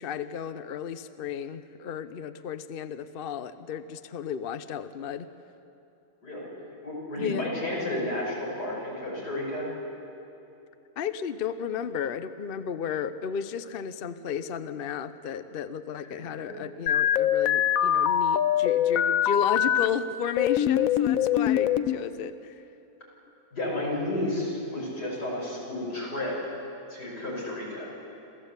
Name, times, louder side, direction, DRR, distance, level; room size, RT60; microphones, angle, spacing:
voice 1, 0.0-5.3 7.2-7.5 11.0-22.7, left 8 dB, 50° left, 12 dB, 0.7 m, -33 dB
voice 2, 6.8-9.7 23.5-26.3 26.9-27.9, left 1 dB, 85° left, -4 dB, 6.7 m, -32 dB
sound 1, 16.9-19.9 20.4-22.0, left 10 dB, 65° left, 1.1 m, -23 dB
27.0 x 15.0 x 8.2 m, 2.9 s
omnidirectional pair, 1.7 m